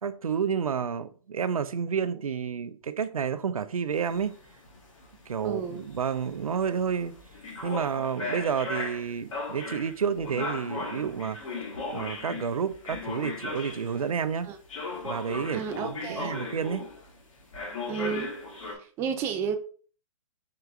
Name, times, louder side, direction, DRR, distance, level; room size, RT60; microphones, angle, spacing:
voice 1, 0.0-4.3 5.3-7.1 7.6-11.4 11.9-14.5 15.0-16.9, right 7 dB, 85° right, 0.4 m, -30 dB
sound 1, 3.9-14.1 14.7-17.2 17.5-18.7, left 3 dB, 65° left, 1.5 m, -37 dB
voice 2, 5.4-5.8 14.4-14.6 15.5-16.3 17.9-18.3 19.0-19.6, right 7 dB, 15° right, 0.3 m, -31 dB
4.7 x 3.3 x 2.4 m
figure-of-eight pair, 130°, 18 cm